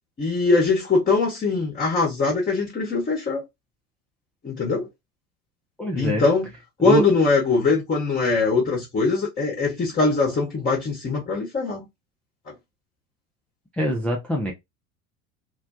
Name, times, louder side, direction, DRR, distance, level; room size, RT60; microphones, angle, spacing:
voice 1, 0.2-3.4 4.4-4.9 5.9-6.5 6.8-11.9 12.5-12.6, left 4 dB, 20° left, 0.8 m, -22 dB
voice 2, 5.8-6.2 6.8-7.0 13.8-14.5, equal, 5° left, 0.3 m, -24 dB
2.3 x 2.1 x 2.6 m
figure-of-eight pair, 65°, 39 cm